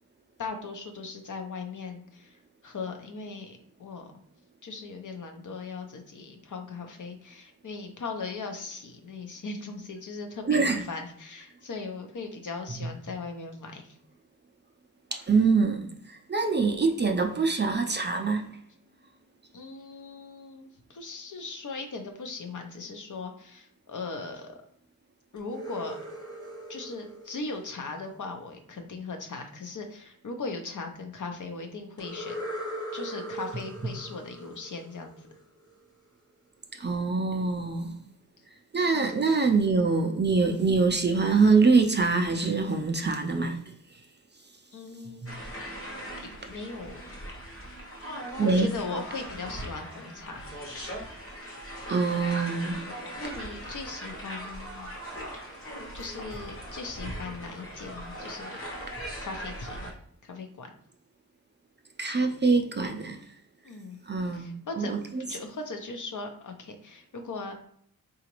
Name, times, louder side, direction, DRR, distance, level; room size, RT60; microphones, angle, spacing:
voice 1, 0.4-4.1 4.6-14.0 19.5-24.6 25.3-26.0 26.7-32.4 32.9-35.3 38.9-39.1 44.7-45.3 46.2-47.0 47.7-47.8 48.4-50.5 53.2-54.9 55.9-58.6 59.2-59.9 60.2-60.7 63.6-64.0 64.3-64.9 65.3-67.5, left 3 dB, 55° left, 0.7 m, -39 dB
voice 2, 10.5-10.8 15.1-18.5 36.8-38.0 38.7-43.6 45.2-45.3 48.4-48.7 51.9-52.8 62.0-63.2 64.1-64.5 64.8-65.2, right 4 dB, 30° right, 0.4 m, -24 dB
sound 1, 25.4-28.3 32.0-35.7, equal, 10° left, 0.8 m, -40 dB
sound 2, 45.3-59.9, equal, 35° left, 1.0 m, -40 dB
3.9 x 2.4 x 2.9 m
wide cardioid pair, 135°, 36 cm